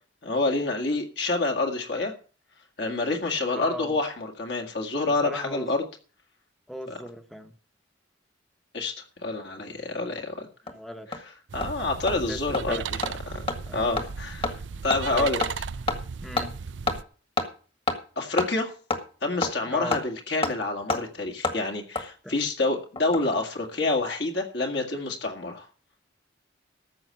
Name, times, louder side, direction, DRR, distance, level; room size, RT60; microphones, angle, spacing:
voice 1, 0.2-2.1 2.8-5.8 6.9-7.0 8.7-10.5 11.5-13.0 13.3-14.5 14.8-15.4 18.2-18.7 19.2-25.7, left 2 dB, 60° left, 2 dB, 1.9 m, -28 dB
voice 2, 3.5-3.9 5.1-5.7 6.7-7.5 10.6-11.1 12.1-12.4 12.7-12.8 13.7-13.9 15.1-15.3 16.2-16.5 19.7-20.0 22.2-22.3, equal, ahead, 6 dB, 0.9 m, -37 dB
Hammer, 10.2-10.3 10.7-10.8 11.1-11.2 11.6-11.7 12.1-12.2 12.5-12.6 13.0-13.1 13.5-13.6 14.0-14.1 14.4-14.5 14.9-15.0 15.4-15.5 15.9-16.0 16.4-16.5 16.9-17.0 17.4-17.5 17.9-18.0 18.4-18.5 18.9-19.0 19.4-19.5 19.9-20.0 20.4-20.5 20.9-21.0 21.4-21.6 21.9-22.0 23.0-23.4 23.6-23.7, left 2 dB, 30° left, 1.5 m, -27 dB
sound 1, 11.5-17.0, right 6 dB, 75° right, 0.5 m, -36 dB
14.0 x 5.7 x 7.5 m, 0.40 s
head